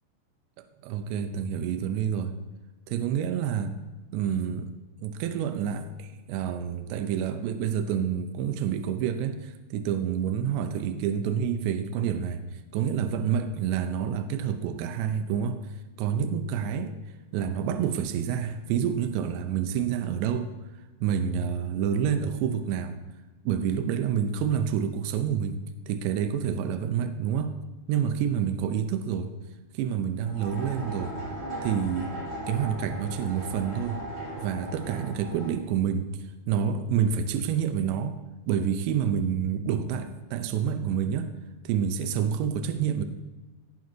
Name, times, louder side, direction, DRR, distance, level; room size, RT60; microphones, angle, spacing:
voice 1, 0.8-2.3 2.9-3.7 4.1-4.7 5.0-15.7 16.0-17.0 17.3-20.6 21.0-23.0 23.5-27.6 27.9-29.3 29.7-31.2 31.6-32.1 32.5-34.0 34.4-36.1 36.5-38.2 38.5-41.3 41.6-43.1, right 8 dB, 85° right, 8 dB, 2.9 m, -28 dB
sound 1, 30.2-35.5, right 1 dB, 45° right, 0.8 m, -37 dB
17.0 x 6.2 x 4.4 m, 1.2 s
omnidirectional pair, 5.3 m